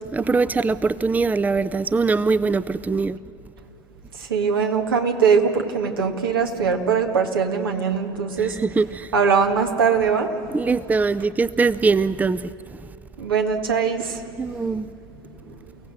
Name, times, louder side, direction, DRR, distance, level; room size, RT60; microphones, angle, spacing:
voice 1, 0.0-3.2 8.4-9.1 10.5-12.4 14.4-14.9, right 4 dB, 15° right, 0.5 m, -22 dB
voice 2, 4.1-8.6 9.1-10.3 13.2-14.2 15.5-15.6, right 6 dB, 85° right, 1.8 m, -21 dB
29.5 x 17.0 x 7.6 m
hypercardioid pair, 75°, 12 cm